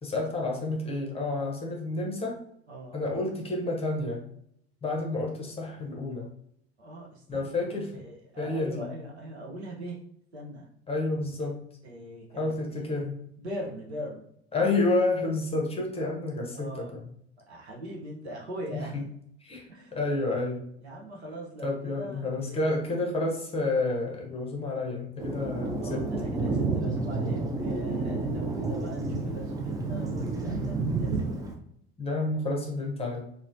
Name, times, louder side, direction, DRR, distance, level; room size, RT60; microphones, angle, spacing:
voice 1, 0.0-2.3 2.9-4.2 4.8-6.3 7.3-7.9 8.4-8.9 10.9-11.6 12.3-13.2 14.5-17.0 18.7-19.0 19.4-20.7 21.6-26.0 32.0-33.2, left 2 dB, 20° left, 0 dB, 0.7 m, -30 dB
voice 2, 2.7-3.0 6.8-7.5 7.9-10.0 10.3-10.7 11.8-12.9 13.4-14.2 14.6-14.7 16.5-17.0 17.5-19.0 19.7-20.0 20.8-22.6 25.8-31.4, right 1 dB, 85° right, -3 dB, 0.7 m, -41 dB
Thunder, 25.2-31.5, right 3 dB, 10° right, 0.3 m, -30 dB
3.0 x 2.0 x 2.5 m, 0.70 s
figure-of-eight pair, 70°, 32 cm